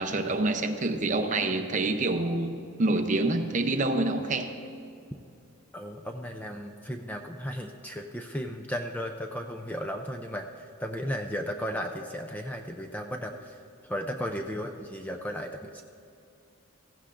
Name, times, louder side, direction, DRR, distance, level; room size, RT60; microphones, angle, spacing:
voice 1, 0.0-4.6, right 2 dB, 35° right, 7 dB, 0.6 m, -27 dB
voice 2, 5.7-13.6 13.8-15.8, equal, 5° left, 4 dB, 0.4 m, -35 dB
15.5 x 15.5 x 2.5 m, 2.5 s
head